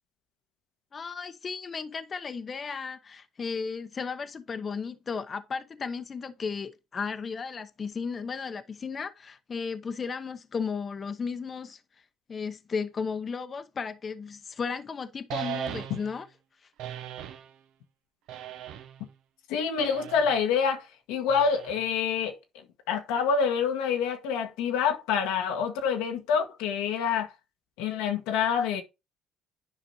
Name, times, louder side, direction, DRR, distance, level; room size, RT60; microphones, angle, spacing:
voice 1, 0.9-11.8 12.3-16.3, left 5 dB, 40° left, 0.7 m, -34 dB
sound 1, 15.3-16.2 16.8-17.5 18.3-19.0 19.8-20.4 21.3-22.0, right 10 dB, 80° right, 0.9 m, -38 dB
voice 2, 19.5-22.3 22.9-27.3 27.8-28.8, left 6 dB, 90° left, 1.2 m, -27 dB
9.8 x 5.1 x 2.8 m
supercardioid pair, 85°, 0 cm